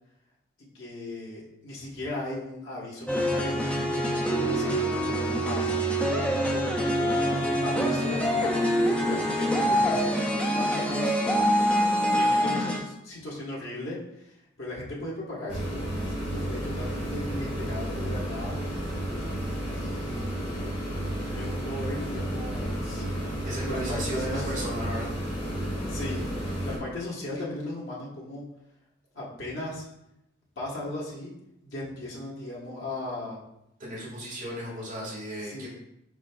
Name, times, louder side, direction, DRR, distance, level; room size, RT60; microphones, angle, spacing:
voice 1, 0.7-5.7 6.1-8.5 8.9-11.2 12.1-18.6 19.8-20.3 21.3-23.0 23.6-24.6 25.9-28.4 29.1-29.9 30.6-31.3 31.6-33.4 35.4-35.7, left 2 dB, 80° left, -5 dB, 1.3 m, -37 dB
sound 1, 3.1-12.8, equal, 5° left, 0.4 m, -25 dB
sound 2, 15.5-26.8, right 1 dB, 30° left, 1.3 m, -32 dB
voice 2, 23.5-25.1 33.8-35.7, right 1 dB, 40° right, -6 dB, 1.7 m, -35 dB
4.9 x 4.7 x 2.3 m, 0.81 s
head